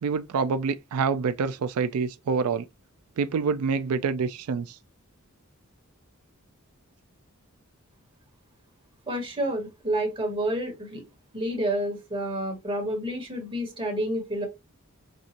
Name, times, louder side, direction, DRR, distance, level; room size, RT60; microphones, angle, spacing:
voice 1, 0.0-2.7 3.2-4.8, right 5 dB, 80° right, 0.4 m, -26 dB
voice 2, 9.1-11.0 11.3-14.5, right 1 dB, 25° right, 1.4 m, -29 dB
5.3 x 2.5 x 2.9 m
head